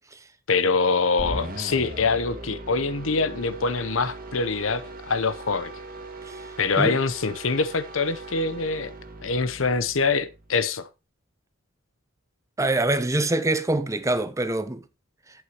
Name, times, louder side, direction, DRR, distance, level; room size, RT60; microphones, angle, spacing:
voice 1, 0.5-5.7 6.6-8.9 9.2-10.9, left 4 dB, 80° left, 0.9 m, -24 dB
sound 1, 1.2-10.6, right 1 dB, 45° right, 1.9 m, -39 dB
voice 2, 12.6-14.8, right 2 dB, 15° right, 0.7 m, -24 dB
11.5 x 8.1 x 3.1 m
head